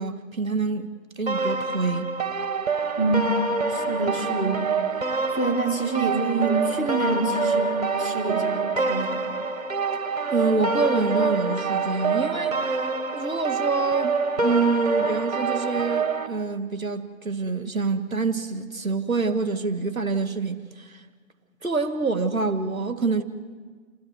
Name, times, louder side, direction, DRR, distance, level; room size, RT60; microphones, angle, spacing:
voice 1, 0.0-2.1 10.3-12.6 13.1-21.1 21.6-23.2, right 4 dB, 5° left, 0.8 m, -26 dB
sound 1, 1.3-16.3, right 4 dB, 30° right, 1.3 m, -26 dB
voice 2, 3.0-3.4 3.7-4.7 5.3-9.2, right 3 dB, 25° left, 2.8 m, -26 dB
28.0 x 13.5 x 9.4 m
figure-of-eight pair, 165°, 40 cm